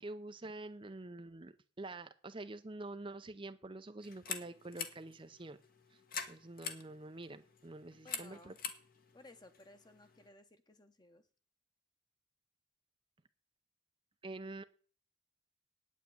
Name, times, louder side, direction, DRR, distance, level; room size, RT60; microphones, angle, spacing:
voice 1, 0.0-5.6 6.3-8.5 14.2-14.6, right 2 dB, 25° right, 0.6 m, -47 dB
sound 1, 4.0-10.3, left 6 dB, 50° left, 1.4 m, -46 dB
voice 2, 8.0-8.6 9.1-11.2, left 2 dB, 20° left, 1.1 m, -59 dB
9.2 x 8.3 x 8.6 m
head